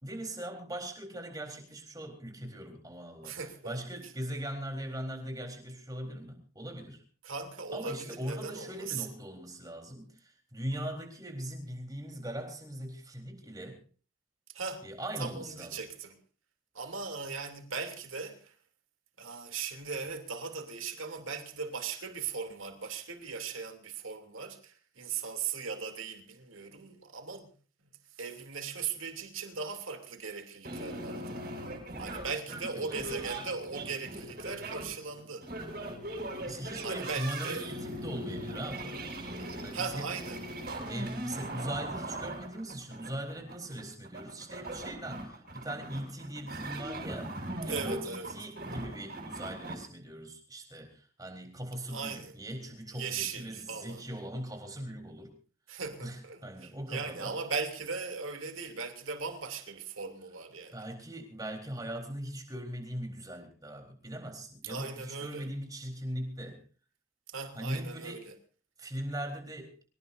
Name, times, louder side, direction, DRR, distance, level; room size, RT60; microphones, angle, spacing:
voice 1, 0.0-3.4 3.6-7.0 7.7-13.8 14.8-15.8 32.5-33.2 36.5-39.1 39.6-40.1 40.9-55.3 55.7-57.4 60.7-66.6 67.6-68.2 68.8-69.7, right 1 dB, 20° right, 4.0 m, -40 dB
voice 2, 3.2-3.8 7.2-9.1 10.7-10.9 14.5-14.9 15.2-16.2 16.7-18.6 19.2-27.5 28.1-31.4 32.0-35.5 36.8-37.7 39.7-40.4 47.7-48.3 51.9-52.4 52.9-54.0 55.7-60.8 64.6-65.5 67.3-68.3, right 5 dB, 90° right, 3.0 m, -38 dB
sound 1, 30.6-49.7, right 1 dB, 50° right, 7.1 m, -40 dB
25.5 x 17.5 x 2.7 m
head